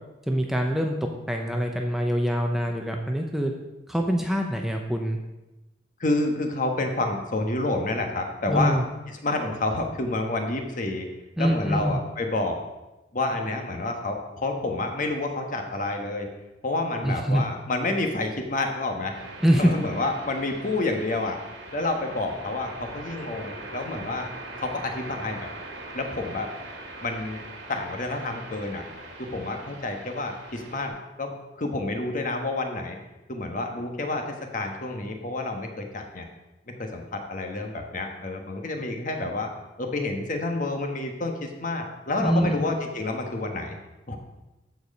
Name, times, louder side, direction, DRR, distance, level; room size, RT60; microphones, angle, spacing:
voice 1, 0.3-0.9 1.3-3.5 3.9-5.2 8.5-8.8 11.4-12.0 17.0-17.4 19.4-19.7 42.2-42.6, equal, ahead, 2 dB, 0.7 m, -24 dB
voice 2, 6.0-8.8 9.2-11.1 11.4-12.6 13.1-16.3 16.6-19.2 19.6-21.4 21.7-24.3 24.6-25.5 25.9-26.5 27.0-27.4 27.7-28.8 29.2-33.0 33.3-36.3 36.8-39.5 39.8-43.8 44.1-44.2, left 2 dB, 45° left, 4 dB, 1.3 m, -29 dB
sound 1, 19.1-30.9, right 2 dB, 70° right, 2.5 m, -41 dB
14.0 x 4.8 x 5.3 m, 1.0 s
head